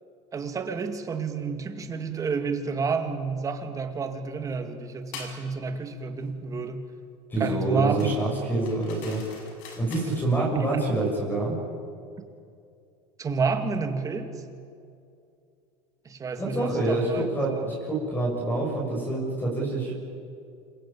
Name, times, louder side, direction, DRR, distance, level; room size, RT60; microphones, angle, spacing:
voice 1, 0.3-6.9 7.4-8.3 13.2-14.3 16.0-17.7, right 4 dB, 20° right, 6 dB, 2.5 m, -30 dB
sound 1, 5.1-5.4 8.0-10.3, left 4 dB, 60° left, 6.3 m, -44 dB
voice 2, 7.3-9.2 9.8-11.6 16.4-19.9, right 2 dB, 15° left, -1 dB, 7.2 m, -26 dB
28.0 x 23.5 x 8.9 m, 2.4 s
supercardioid pair, 140°, 15 cm